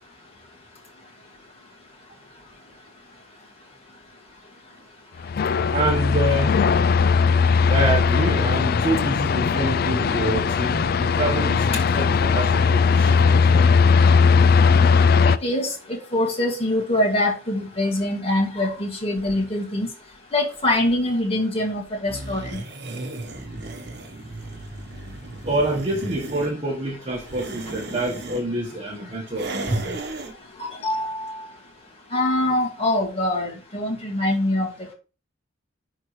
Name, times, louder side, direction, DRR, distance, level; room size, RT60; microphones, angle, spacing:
sound 1, 5.2-15.4, left 5 dB, 55° left, 0.4 m, -18 dB
voice 1, 5.7-6.6 7.7-13.7 25.4-30.0, right 1 dB, 30° right, 1.3 m, -26 dB
voice 2, 15.2-19.9 20.3-22.6 30.6-31.4 32.1-34.7, left 1 dB, 30° left, 2.2 m, -24 dB
sound 2, 22.1-26.5 27.1-28.4 29.3-30.3, right 2 dB, 60° right, 1.1 m, -35 dB
10.5 x 3.8 x 3.2 m
head